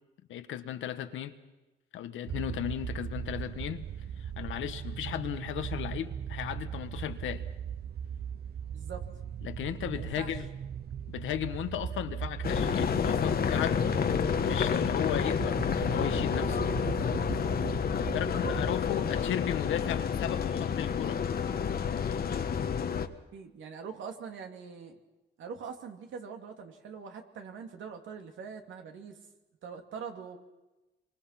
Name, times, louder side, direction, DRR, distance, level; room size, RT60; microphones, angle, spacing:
voice 1, 0.3-1.3 1.9-3.8 4.2-7.5 9.4-10.5 11.1-14.1 14.4-16.7 18.0-21.2, left 11 dB, 80° left, 1.5 m, -35 dB
sound 1, 2.3-18.7, right 8 dB, 55° right, 0.7 m, -38 dB
voice 2, 8.7-9.0 9.8-10.3 18.3-18.6 23.3-25.0 25.4-29.2 29.6-30.4, right 6 dB, 75° right, 2.9 m, -43 dB
sound 2, 12.4-23.1, left 7 dB, 50° left, 1.4 m, -29 dB
27.5 x 24.0 x 5.9 m
cardioid pair, 90°, 20 cm